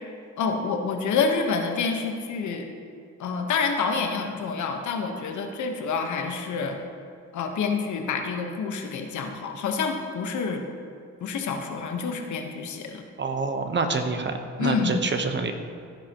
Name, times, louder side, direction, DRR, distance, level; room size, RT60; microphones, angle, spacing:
voice 1, 0.4-2.7 3.2-6.8 7.3-10.6 11.2-13.0 14.6-15.0, left 5 dB, 75° left, 4 dB, 1.3 m, -28 dB
voice 2, 13.2-15.5, right 4 dB, 35° right, 6 dB, 1.0 m, -27 dB
16.5 x 9.8 x 3.0 m, 2.4 s
cardioid pair, 90°, 30 cm